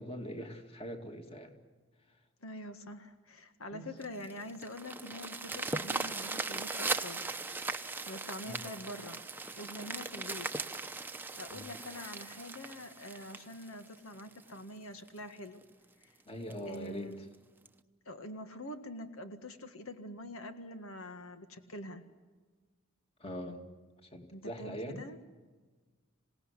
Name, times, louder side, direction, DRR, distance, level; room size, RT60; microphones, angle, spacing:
voice 1, 0.0-1.5 3.7-3.8 8.4-8.6 11.5-11.7 16.3-17.1 23.2-23.6 24.0-25.0, equal, 30° left, 4 dB, 2.6 m, -42 dB
voice 2, 2.4-7.2 7.7-9.2 9.6-10.5 11.4-15.6 16.0-16.2 16.6-17.3 18.1-22.0 24.3-25.2, left 1 dB, 85° left, 8 dB, 1.8 m, -45 dB
sound 1, 4.0-14.5 15.1-15.2 15.6-15.7 16.0-16.1 16.5-16.8 17.7-17.8, right 3 dB, 10° right, 0.9 m, -39 dB
27.0 x 18.0 x 9.8 m, 1.4 s
head